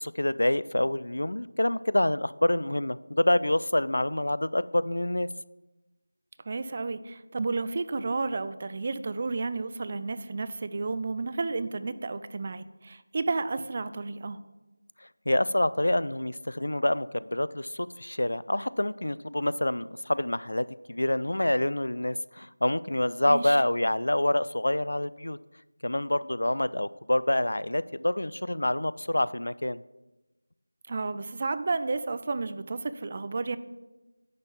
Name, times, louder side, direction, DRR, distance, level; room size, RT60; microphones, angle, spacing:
voice 1, 0.0-5.3 15.3-25.4 25.8-29.8, left 1 dB, 75° left, 17 dB, 0.3 m, -27 dB
voice 2, 6.5-14.4 23.3-23.6 30.9-33.6, right 3 dB, 30° right, 13 dB, 0.4 m, -32 dB
10.5 x 3.6 x 7.1 m, 1.1 s
figure-of-eight pair, 170°, 0 cm